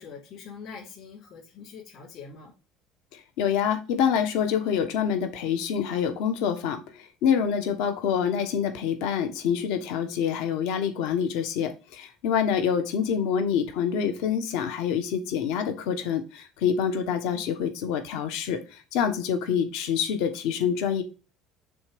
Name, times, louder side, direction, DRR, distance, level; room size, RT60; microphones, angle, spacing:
voice 1, 0.0-2.5, left 5 dB, 55° left, 3.1 m, -43 dB
voice 2, 3.1-21.0, left 8 dB, 80° left, 1.3 m, -26 dB
6.9 x 3.4 x 5.2 m
cardioid pair, 135°, 0 cm